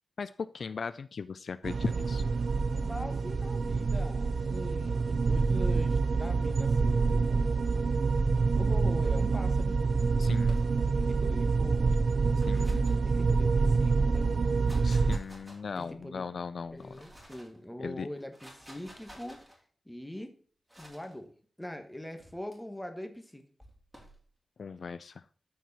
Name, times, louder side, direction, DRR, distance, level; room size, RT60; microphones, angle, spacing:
voice 1, 0.2-2.2 10.2-10.6 12.4-12.9 14.8-16.9 17.8-18.1 24.6-25.2, left 5 dB, 70° left, 14 dB, 0.3 m, -38 dB
sound 1, 1.6-15.2, right 4 dB, 70° right, 0.5 m, -27 dB
voice 2, 2.7-7.4 8.5-9.8 10.9-12.0 13.0-14.3 15.7-16.4 16.7-19.4 19.8-20.4 20.8-23.4, left 1 dB, 10° left, 6 dB, 1.3 m, -42 dB
sound 2, 10.4-11.1 12.1-13.7 14.4-16.0 16.6-17.6 18.2-19.6 20.7-21.1 22.2-22.6 23.6-24.2, equal, 15° right, 3.3 m, -53 dB
13.0 x 4.7 x 4.1 m, 0.43 s
wide cardioid pair, 95°, 0 cm